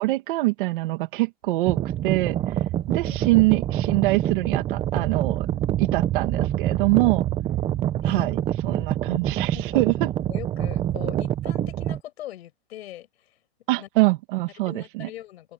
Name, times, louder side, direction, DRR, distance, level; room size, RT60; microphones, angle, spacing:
voice 1, 0.0-2.4 2.9-5.5 5.8-7.2 8.0-10.1 13.7-15.1, right 21 dB, 55° right, 2.2 m, -24 dB
sound 1, 1.7-12.0, right 12 dB, 20° right, 0.8 m, -26 dB
voice 2, 3.0-3.5 8.0-8.3 8.7-8.9 9.5-9.8 10.3-13.3 13.8-14.1 14.7-15.5, left 13 dB, 80° left, 8.0 m, -41 dB
open air
supercardioid pair, 165°, 31 cm